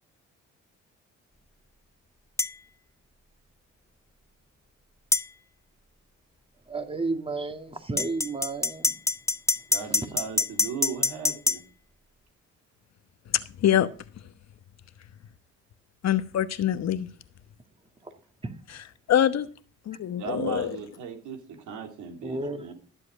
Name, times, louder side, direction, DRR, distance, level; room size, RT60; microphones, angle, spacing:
sound 1, 2.4-2.5 5.1-5.3 8.0-11.6, left 3 dB, 10° left, 0.6 m, -25 dB
voice 1, 6.7-9.0 18.0-18.1 18.4-18.6 22.2-22.7, right 3 dB, 20° right, 1.9 m, -32 dB
voice 2, 9.7-11.6 20.2-22.7, right 6 dB, 80° right, 3.4 m, -37 dB
voice 3, 13.3-13.9 16.0-17.1 19.1-19.5 19.9-20.7, left 10 dB, 60° left, 1.1 m, -24 dB
13.5 x 7.7 x 5.0 m
cardioid pair, 90°, 30 cm